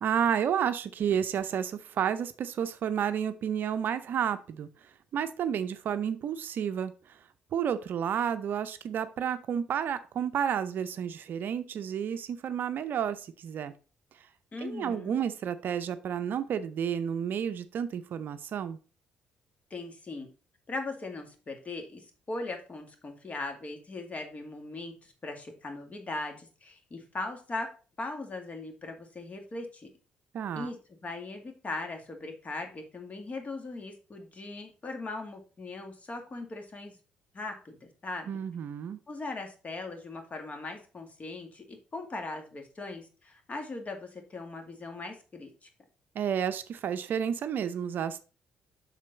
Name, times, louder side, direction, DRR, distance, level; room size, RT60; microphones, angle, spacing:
voice 1, 0.0-4.7 5.1-7.2 7.5-13.7 14.6-18.8 30.3-30.7 38.3-39.0 46.1-48.2, right 8 dB, 55° right, 12 dB, 0.6 m, -31 dB
voice 2, 14.5-15.2 19.7-20.3 20.7-27.7 28.0-29.9 30.6-37.0 37.3-38.4 39.1-41.6 41.9-45.7, left 2 dB, 35° left, 5 dB, 2.1 m, -39 dB
7.4 x 5.7 x 4.1 m, 0.35 s
figure-of-eight pair, 45°, 4 cm